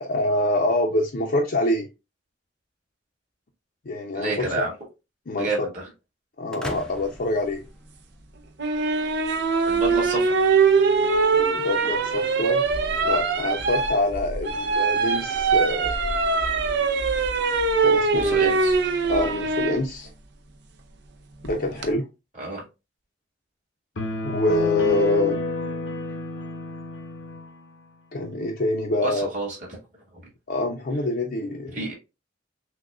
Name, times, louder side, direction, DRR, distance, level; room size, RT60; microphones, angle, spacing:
voice 1, 0.0-1.9 3.9-4.6 5.3-5.5 6.4-7.6 11.3-12.6 13.0-15.9 17.8-18.5 19.0-20.1 21.4-22.1 24.2-25.4 28.1-29.3 30.5-31.8, left 2 dB, 55° left, 0.6 m, -25 dB
voice 2, 4.1-4.7 5.4-5.8 9.7-10.4 18.1-18.8 22.4-22.6 29.0-29.6 31.7-31.9, right 2 dB, 45° right, 1.9 m, -29 dB
sound 1, 6.5-8.5, left 1 dB, 5° left, 0.5 m, -39 dB
sound 2, 8.6-19.8 21.5-21.9, right 4 dB, 65° right, 0.6 m, -22 dB
sound 3, 24.0-27.5, left 2 dB, 80° left, 0.9 m, -30 dB
6.2 x 2.3 x 2.4 m
head